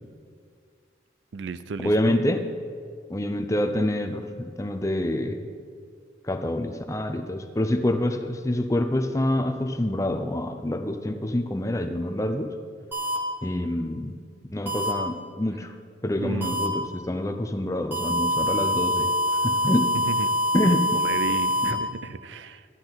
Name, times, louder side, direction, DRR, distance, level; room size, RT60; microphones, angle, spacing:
voice 1, 1.3-2.2 16.2-16.5 19.9-20.3 20.6-22.7, right 4 dB, 75° right, 13 dB, 0.4 m, -34 dB
voice 2, 1.8-2.4 3.1-5.4 6.3-12.5 13.4-14.1 14.5-15.7 16.0-19.1 19.4-20.0 20.5-21.0 21.6-21.7, left 1 dB, 15° left, 6 dB, 0.5 m, -26 dB
sound 1, 12.9-13.2 14.7-14.9 16.4-16.7 17.9-21.7, equal, 10° right, 1.3 m, -24 dB
12.5 x 10.5 x 4.0 m, 2.2 s
head